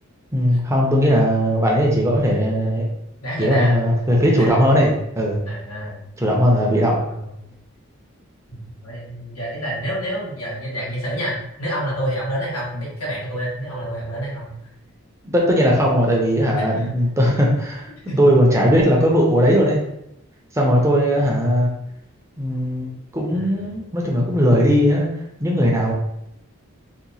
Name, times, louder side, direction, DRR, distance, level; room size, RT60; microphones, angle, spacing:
voice 1, 0.3-2.9 3.4-5.4 6.2-7.0 15.2-17.9 18.2-19.8 20.5-21.7 22.4-25.1 25.4-25.9, equal, 15° right, -2 dB, 0.5 m, -18 dB
voice 2, 3.2-3.8 4.4-4.5 5.5-6.0 7.1-7.3 8.5-14.5 16.6-16.9 18.0-18.3 21.1-21.3 23.3-23.8 25.9-26.0, equal, 85° left, -5 dB, 1.2 m, -28 dB
2.8 x 2.2 x 3.9 m, 0.80 s
head